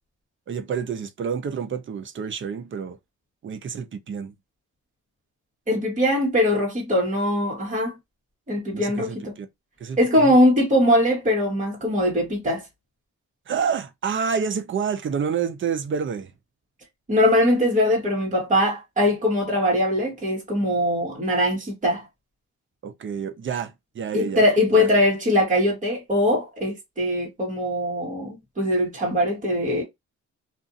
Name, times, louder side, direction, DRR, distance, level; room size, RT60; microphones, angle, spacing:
voice 1, 0.5-3.0 3.4-4.3 8.7-9.5 9.8-10.3 13.5-16.3 22.8-24.4 24.7-24.9, right 6 dB, 40° right, 0.6 m, -28 dB
voice 2, 5.7-7.9 8.5-9.3 10.0-12.6 17.1-22.0 24.1-29.8, left 1 dB, 25° right, 1.4 m, -21 dB
2.6 x 2.5 x 2.5 m
cardioid pair, 90°, 30 cm